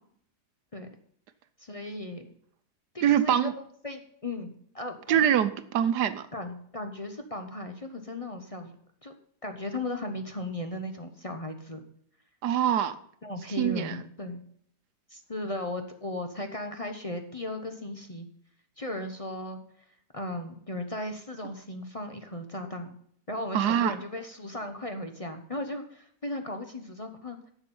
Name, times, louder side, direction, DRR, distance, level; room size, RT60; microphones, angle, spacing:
voice 1, 1.6-2.3 2.9-3.5 3.8-5.2 6.3-8.7 9.0-9.1 9.4-11.8 13.2-14.4 15.1-18.3 18.8-19.6 20.1-22.9 23.3-27.5, left 1 dB, 25° left, 6 dB, 0.9 m, -36 dB
voice 2, 3.0-3.5 5.1-6.3 12.4-12.9 13.6-14.0 23.5-23.9, right 10 dB, 85° right, 12 dB, 1.4 m, -24 dB
11.0 x 7.3 x 5.5 m, 0.64 s
omnidirectional pair, 1.7 m